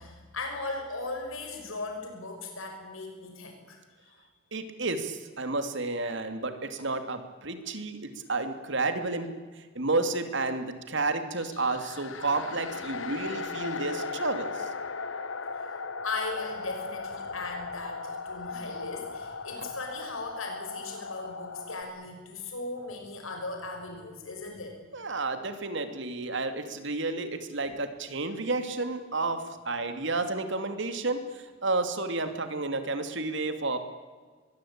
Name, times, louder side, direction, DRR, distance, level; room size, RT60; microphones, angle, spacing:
voice 1, 0.0-4.1 16.0-24.8, left 3 dB, 85° left, 3 dB, 6.2 m, -38 dB
voice 2, 4.5-14.7 24.9-33.8, right 3 dB, 60° right, 8 dB, 2.7 m, -31 dB
sound 1, 11.4-21.8, left 4 dB, 70° left, 1.5 m, -37 dB
24.0 x 22.0 x 8.8 m, 1.5 s
head